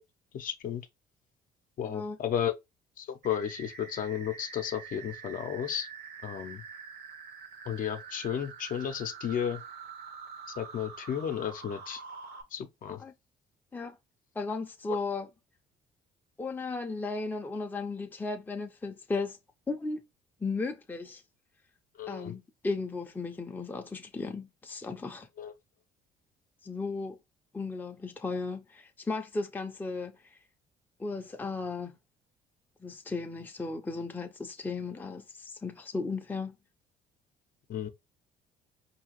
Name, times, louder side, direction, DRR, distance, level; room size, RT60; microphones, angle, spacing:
voice 1, 0.3-0.8 1.8-2.6 3.0-5.9 6.2-6.6 7.7-9.6 10.6-12.0 12.5-13.0 22.0-22.3 25.4-25.5 37.7-37.9, left 9 dB, 55° left, 0.6 m, -33 dB
voice 2, 1.8-2.2 12.9-13.1 13.7-14.0 14.4-15.3 16.4-19.4 19.7-20.0 20.4-21.2 22.1-25.3 26.6-27.2 27.5-30.4 31.0-31.9 32.8-36.6, left 3 dB, 10° left, 0.5 m, -35 dB
sound 1, 3.2-12.4, right 5 dB, 75° right, 1.1 m, -46 dB
4.8 x 2.7 x 3.0 m
cardioid pair, 110°, 17 cm